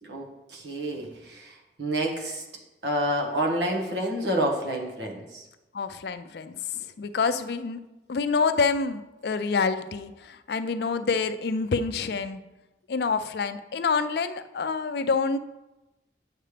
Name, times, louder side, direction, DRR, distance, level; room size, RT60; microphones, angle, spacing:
voice 1, 0.0-2.4 2.8-5.5, right 1 dB, 80° right, 1 dB, 1.4 m, -29 dB
voice 2, 5.7-12.4 12.9-15.4, left 4 dB, 65° left, 11 dB, 0.4 m, -27 dB
8.8 x 6.5 x 3.4 m, 1.0 s
head